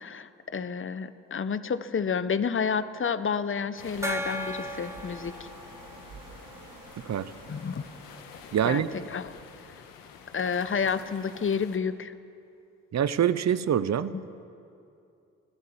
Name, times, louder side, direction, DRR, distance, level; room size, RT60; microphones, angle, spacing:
voice 1, 0.0-5.5 7.5-7.8 8.6-8.8 9.1-9.4 10.3-12.1 14.1-14.2, left 6 dB, 40° left, 13 dB, 1.1 m, -30 dB
sound 1, 3.7-11.8, left 6 dB, 85° left, 1.7 m, -49 dB
sound 2, 3.8-9.1, right 4 dB, 75° right, 2.6 m, -50 dB
Gong, 4.0-7.3, equal, 10° right, 1.7 m, -37 dB
voice 2, 8.5-8.9 12.9-14.1, right 9 dB, 55° right, 15 dB, 1.0 m, -25 dB
24.5 x 14.5 x 7.2 m, 2.6 s
supercardioid pair, 50°, 33 cm